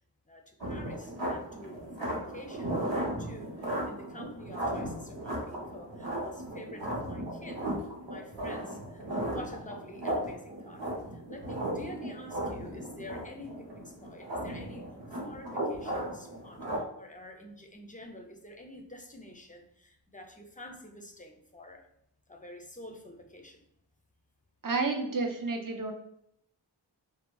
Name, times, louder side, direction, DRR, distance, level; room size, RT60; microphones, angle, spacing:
voice 1, 0.3-14.9 15.2-21.9 22.3-23.6, left 1 dB, 20° left, 3 dB, 0.4 m, -48 dB
sound 1, 0.6-16.8, right 1 dB, 90° right, 0.8 m, -36 dB
voice 2, 24.6-25.9, right 3 dB, 50° right, 4 dB, 0.5 m, -30 dB
3.5 x 2.0 x 2.2 m, 0.74 s
wide cardioid pair, 45°, 44 cm